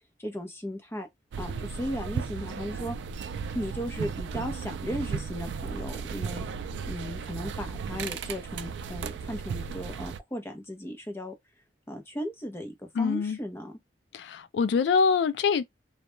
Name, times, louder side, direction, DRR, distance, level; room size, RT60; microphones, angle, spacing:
voice 1, 0.2-1.1 1.4-3.0 3.5-6.4 6.9-11.3 11.9-13.7, equal, 15° left, 0.6 m, -36 dB
sound 1, 1.3-10.2, right 6 dB, 75° right, 0.3 m, -35 dB
voice 2, 13.0-13.4 14.1-15.6, left 5 dB, 70° left, 0.3 m, -24 dB
2.2 x 2.1 x 3.0 m
head